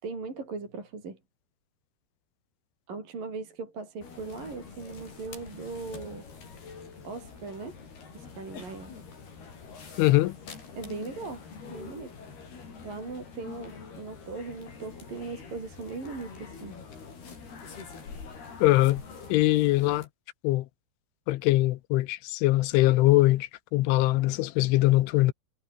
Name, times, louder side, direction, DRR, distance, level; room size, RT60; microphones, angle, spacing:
voice 1, 0.0-1.2 2.9-6.2 7.0-7.8 8.1-8.9 10.8-11.4 11.7-12.1 12.8-16.8, right 4 dB, 45° right, 7.5 m, -39 dB
sound 1, 4.0-20.1, left 5 dB, 55° left, 7.7 m, -45 dB
voice 2, 10.0-10.3 18.6-19.0 19.3-20.1 20.4-20.7 21.3-25.3, left 18 dB, 80° left, 3.3 m, -22 dB
omnidirectional pair, 5.7 m